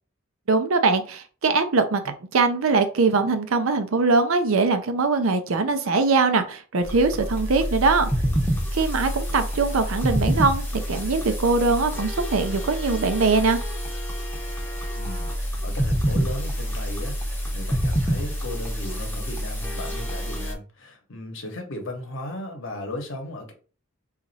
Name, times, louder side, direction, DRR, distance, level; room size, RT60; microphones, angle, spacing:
voice 1, 0.5-2.0 2.3-8.1 8.7-13.6, right 4 dB, 80° right, 0.6 m, -22 dB
sound 1, 6.8-20.5, equal, 10° left, 0.7 m, -27 dB
voice 2, 8.1-8.5 14.9-23.5, left 1 dB, 65° left, 0.9 m, -36 dB
3.0 x 2.5 x 4.1 m
head